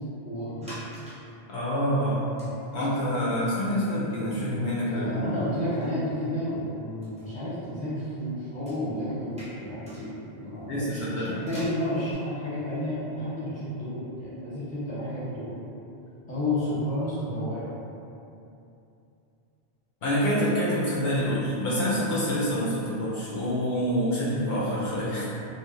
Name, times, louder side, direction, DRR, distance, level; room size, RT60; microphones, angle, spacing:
voice 1, 0.2-0.7 4.9-15.5 16.3-17.7, left 1 dB, 10° left, -13 dB, 1.0 m, -31 dB
sound 1, 0.6-1.3 1.7-1.8 2.3-3.2 3.6-3.7 3.9-6.7 7.0-12.1, equal, 10° right, 0.5 m, -49 dB
voice 2, 1.5-2.2 2.7-5.4 10.7-11.4 20.0-25.3, equal, 70° left, -8 dB, 0.8 m, -27 dB
3.1 x 2.4 x 2.3 m, 2.8 s
omnidirectional pair, 1.1 m